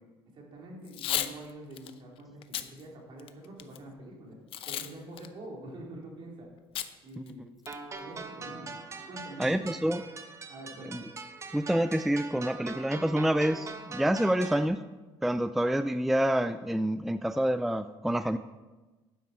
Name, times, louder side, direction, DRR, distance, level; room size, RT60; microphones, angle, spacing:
voice 1, 0.3-4.4 4.7-6.5 7.0-7.6 8.0-8.7 9.0-10.0 10.5-11.1, right 1 dB, 55° right, -1 dB, 3.4 m, -46 dB
Packing tape duct tape / Tearing, 0.9-1.3 1.8-1.9 2.4-2.7 3.2-3.8 4.5-4.9 5.2-5.3 6.8-6.9 7.3-7.4 7.7-8.0, left 11 dB, 65° left, 0.7 m, -33 dB
sound 1, 7.7-14.7, right 4 dB, 30° right, 1.1 m, -42 dB
voice 2, 9.4-10.0 10.9-11.0 11.5-14.8 15.2-18.4, right 1 dB, ahead, 11 dB, 0.3 m, -27 dB
12.0 x 9.2 x 4.3 m, 1.2 s
cardioid pair, 120°, 10 cm